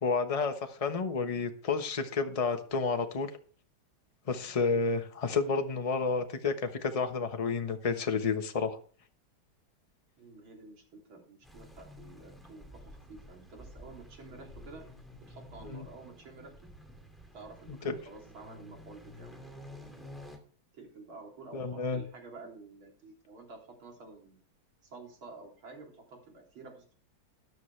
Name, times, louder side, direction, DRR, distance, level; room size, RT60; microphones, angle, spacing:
voice 1, 0.0-3.3 4.3-8.8 15.6-15.8 17.7-17.9 21.5-22.0, left 4 dB, 25° left, 6 dB, 0.9 m, -30 dB
voice 2, 10.2-14.9 15.2-16.7 17.3-19.3 20.7-24.4 24.8-26.9, right 3 dB, 85° right, 1 dB, 4.0 m, -50 dB
sound 1, 11.4-20.4, left 1 dB, ahead, 2.2 m, -51 dB
13.5 x 10.5 x 3.3 m, 0.43 s
omnidirectional pair, 2.2 m